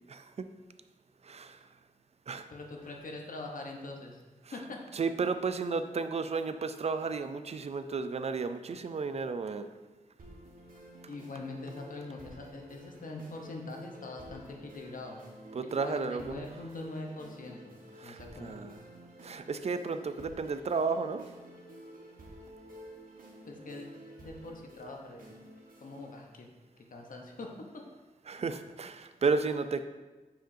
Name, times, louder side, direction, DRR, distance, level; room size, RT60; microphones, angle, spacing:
voice 1, 0.1-0.5 1.2-1.6 2.3-2.5 4.4-4.6 4.9-9.7 15.5-16.5 18.0-18.8 19.2-21.2 28.3-29.9, right 4 dB, 50° right, 10 dB, 0.4 m, -33 dB
voice 2, 2.5-4.2 4.5-4.8 11.1-15.2 15.6-17.8 18.0-18.7 23.4-23.9 24.2-25.2 25.8-26.5 26.9-27.5, left 2 dB, 70° left, 1 dB, 0.9 m, -43 dB
sound 1, 10.2-26.2, right 1 dB, 75° right, 1.2 m, -51 dB
9.0 x 4.9 x 2.7 m, 1.2 s
wide cardioid pair, 125°, 14 cm